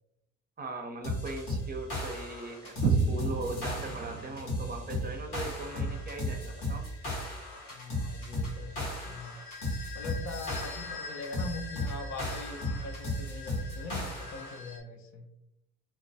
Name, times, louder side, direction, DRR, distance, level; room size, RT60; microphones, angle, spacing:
voice 1, 0.6-6.9, right 2 dB, 30° right, 4 dB, 0.5 m, -39 dB
sound 1, 1.0-14.6, left 1 dB, 85° left, 0.9 m, -36 dB
sound 2, 2.8-6.8, right 4 dB, 85° right, 0.5 m, -33 dB
sound 3, 5.6-14.8, left 4 dB, 25° left, 0.7 m, -47 dB
voice 2, 7.7-9.4 9.9-15.3, left 3 dB, 60° left, 4 dB, 0.5 m, -42 dB
2.2 x 2.1 x 2.6 m, 0.85 s
hypercardioid pair, 50°, 32 cm